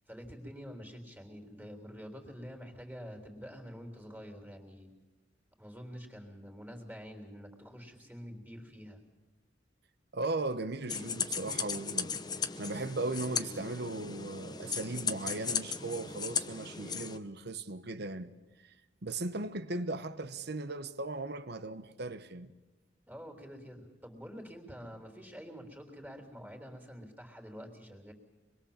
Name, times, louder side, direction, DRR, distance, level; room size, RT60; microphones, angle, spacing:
voice 1, 0.1-4.9 5.6-9.0 23.1-28.1, equal, 10° right, 3.6 m, -47 dB
voice 2, 10.1-12.2 12.6-18.3 18.6-18.7 19.0-22.5, right 2 dB, 60° right, 1.1 m, -37 dB
sound 1, 10.9-17.2, left 6 dB, 20° left, 0.8 m, -36 dB
25.0 x 21.5 x 7.4 m
head